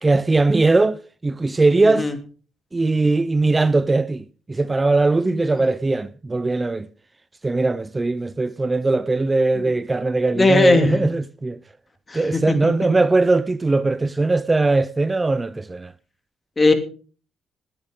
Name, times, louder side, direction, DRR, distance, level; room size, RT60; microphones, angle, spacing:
voice 1, 0.0-2.1 2.7-6.9 7.4-11.6 12.1-15.9, right 3 dB, 20° right, 0.6 m, -20 dB
voice 2, 1.8-2.1 5.2-5.4 9.6-9.7 10.4-11.0 12.1-12.9 16.6-16.7, left 3 dB, 25° left, 2.8 m, -20 dB
20.5 x 9.8 x 3.8 m
cardioid pair, 90°, 0 cm